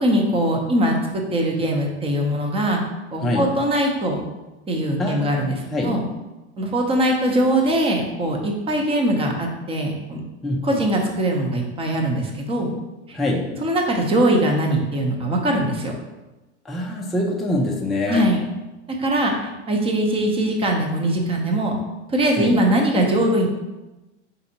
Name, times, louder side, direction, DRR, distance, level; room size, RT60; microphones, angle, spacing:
voice 1, 0.0-2.8 3.1-4.2 4.7-5.6 5.8-6.0 6.6-10.2 10.6-12.7 13.1-13.2 13.6-15.9 18.1-18.4 19.0-21.8 22.1-23.5, right 1 dB, 15° right, 1 dB, 0.7 m, -21 dB
voice 2, 5.0-6.0 10.4-10.8 13.1-13.5 16.6-18.3 22.4-22.6, left 1 dB, ahead, -2 dB, 0.3 m, -25 dB
4.2 x 3.9 x 2.8 m, 1.1 s
hypercardioid pair, 105°, 35 cm